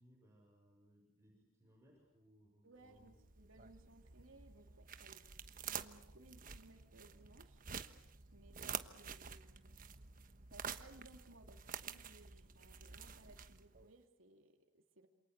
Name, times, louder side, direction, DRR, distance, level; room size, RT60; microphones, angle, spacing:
voice 1, 0.0-3.1, equal, 15° right, -2 dB, 7.2 m, -67 dB
voice 2, 2.6-5.3 5.7-7.6 8.3-9.7 10.5-15.1, right 2 dB, 75° right, 4 dB, 2.9 m, -63 dB
sound 1, 2.9-13.9, right 7 dB, 45° right, 1.2 m, -49 dB
28.0 x 27.5 x 6.7 m, 0.74 s
head